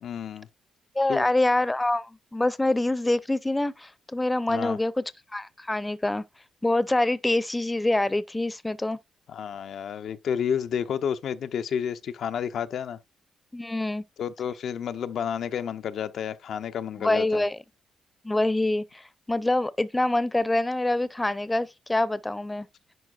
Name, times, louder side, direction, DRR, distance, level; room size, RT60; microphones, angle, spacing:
voice 1, 0.0-0.5 1.1-1.2 4.5-4.8 9.3-13.0 14.2-17.4, left 8 dB, 70° left, 0.6 m, -30 dB
voice 2, 1.0-5.0 5.3-6.2 6.6-9.0 13.5-14.0 17.0-17.6 18.2-22.7, left 2 dB, 15° left, 0.6 m, -25 dB
11.0 x 4.5 x 2.4 m
cardioid pair, 90°, 0 cm